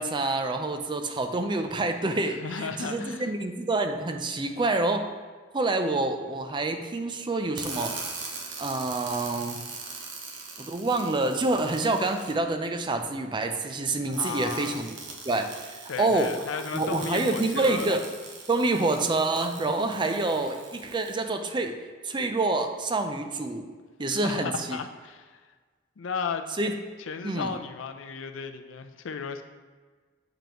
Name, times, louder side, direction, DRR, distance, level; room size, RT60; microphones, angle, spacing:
voice 1, 0.0-5.1 5.5-8.0 8.6-9.6 10.6-15.0 15.2-18.0 18.5-21.8 22.0-23.7 24.0-24.8 26.6-26.7 27.2-27.5, right 2 dB, 25° right, 6 dB, 0.4 m, -27 dB
voice 2, 2.4-3.3 14.0-14.8 15.9-17.9 24.1-25.4 26.0-26.5 27.1-29.4, left 5 dB, 80° left, 8 dB, 0.5 m, -34 dB
sound 1, 7.6-12.3 14.0-21.1, right 4 dB, 65° right, 0.9 m, -41 dB
7.6 x 5.1 x 2.9 m, 1.4 s
head